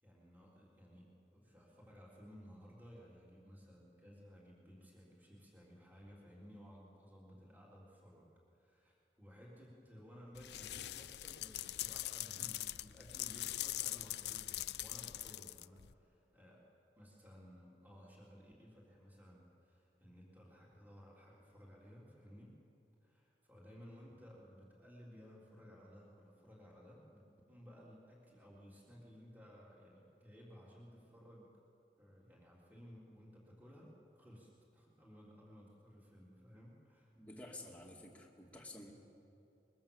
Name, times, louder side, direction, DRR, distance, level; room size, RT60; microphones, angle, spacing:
voice 1, 0.0-16.6 17.0-22.6 23.0-31.5 32.0-37.1, equal, 10° right, -5 dB, 3.6 m, -58 dB
sound 1, 10.4-15.9, left 15 dB, 75° left, 0.5 m, -42 dB
voice 2, 37.2-38.9, left 1 dB, 10° left, -1 dB, 2.3 m, -51 dB
23.5 x 22.0 x 7.3 m, 2.8 s
head